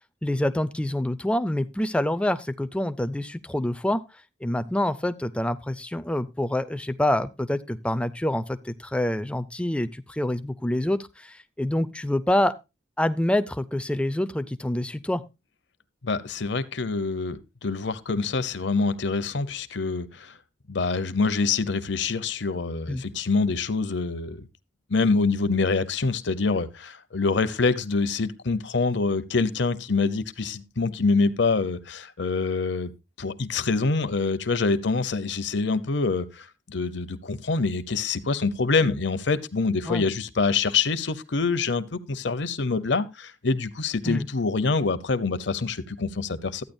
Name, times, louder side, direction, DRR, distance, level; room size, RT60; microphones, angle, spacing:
voice 1, 0.2-4.0 4.4-12.5 13.0-15.2 22.9-23.0 39.8-40.0 44.0-44.3, left 1 dB, 5° left, 0.4 m, -26 dB
voice 2, 16.0-20.4 20.7-24.4 24.9-32.9 33.2-46.6, left 4 dB, 65° left, 0.8 m, -25 dB
13.5 x 9.4 x 2.6 m
head